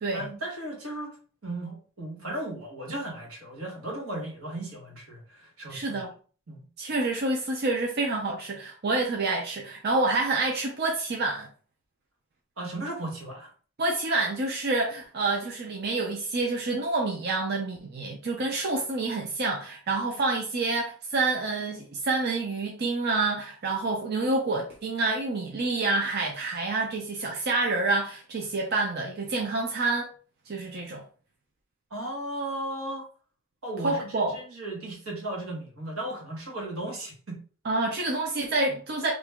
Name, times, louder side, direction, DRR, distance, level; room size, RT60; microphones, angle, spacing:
voice 1, 0.1-1.2 1.4-6.1 6.5-6.7 12.6-13.5 31.9-33.1 33.6-37.4, right 1 dB, 90° right, 1.4 m, -36 dB
voice 2, 5.7-6.1 6.8-11.5 13.8-30.1 30.5-31.0 33.8-34.4 37.6-39.1, right 3 dB, 50° right, 0.5 m, -28 dB
2.9 x 2.6 x 3.4 m
head